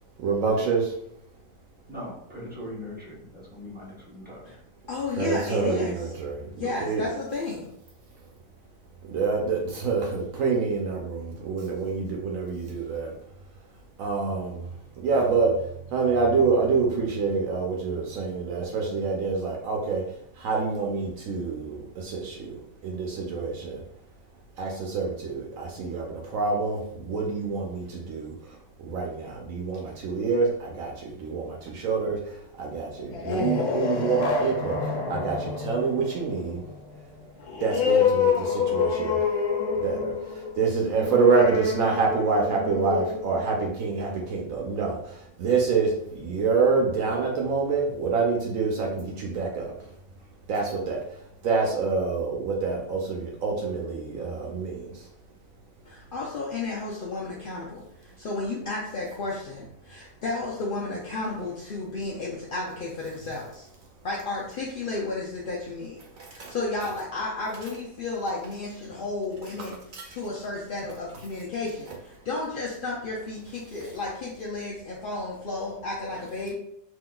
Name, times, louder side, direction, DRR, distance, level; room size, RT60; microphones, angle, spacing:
voice 1, 0.2-0.9 5.2-6.5 6.8-7.0 9.1-13.1 14.0-14.7 15.0-15.5 15.9-20.0 20.4-22.6 22.8-23.8 24.6-28.3 28.8-32.2 32.6-34.8 35.1-36.6 37.6-39.2 39.8-49.7 50.5-51.0 51.4-54.9 66.4-66.5 69.9-70.0, right 4 dB, 70° right, -1 dB, 1.0 m, -26 dB
voice 2, 1.9-4.5, left 1 dB, 10° right, -6 dB, 0.8 m, -40 dB
voice 3, 4.9-6.1 6.6-7.7 55.8-63.6 64.0-66.0 66.3-69.8 70.1-76.5, left 3 dB, 65° left, -4 dB, 0.5 m, -32 dB
sound 1, 33.0-44.2, left 5 dB, 80° left, 1.1 m, -28 dB
3.7 x 2.7 x 2.2 m, 0.73 s
omnidirectional pair, 1.5 m